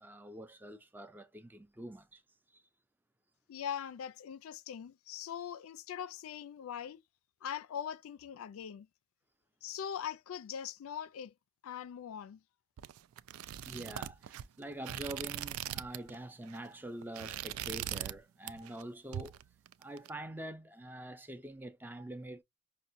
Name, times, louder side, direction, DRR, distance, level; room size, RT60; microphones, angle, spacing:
voice 1, 0.0-2.2 2.5-2.6 13.6-19.4 19.8-22.4, right 1 dB, 10° right, 0.4 m, -45 dB
voice 2, 3.5-7.0 7.4-8.9 9.6-11.3 11.6-12.4, left 8 dB, 85° left, 0.3 m, -41 dB
sound 1, 12.8-16.2 16.4-16.7 17.0-18.2 18.5-18.8 19.1-20.1, right 12 dB, 90° right, 0.3 m, -41 dB
5.6 x 2.2 x 2.5 m
head